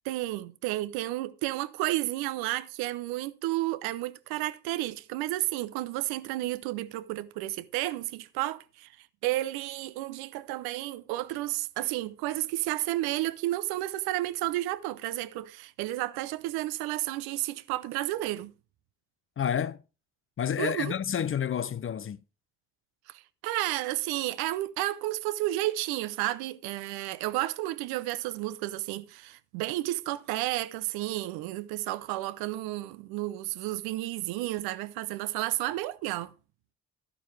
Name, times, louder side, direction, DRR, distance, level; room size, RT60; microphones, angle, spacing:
voice 1, 0.0-18.5 20.6-21.0 23.1-36.3, right 16 dB, 75° right, 0.7 m, -32 dB
voice 2, 19.4-19.8 20.4-22.2, left 8 dB, 35° left, 0.6 m, -29 dB
12.0 x 11.0 x 3.2 m
hypercardioid pair, 45°, 37 cm